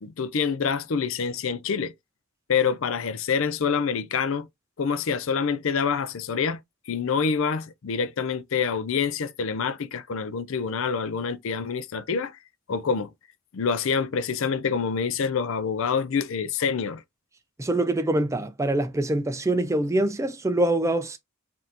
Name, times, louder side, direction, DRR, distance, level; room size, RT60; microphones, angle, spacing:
voice 1, 0.0-1.9 2.5-4.5 4.8-6.6 6.9-12.4 12.7-13.1 13.5-17.0, left 6 dB, 60° left, 0.4 m, -26 dB
voice 2, 17.6-21.2, right 1 dB, 15° right, 0.4 m, -24 dB
5.2 x 2.6 x 2.8 m
head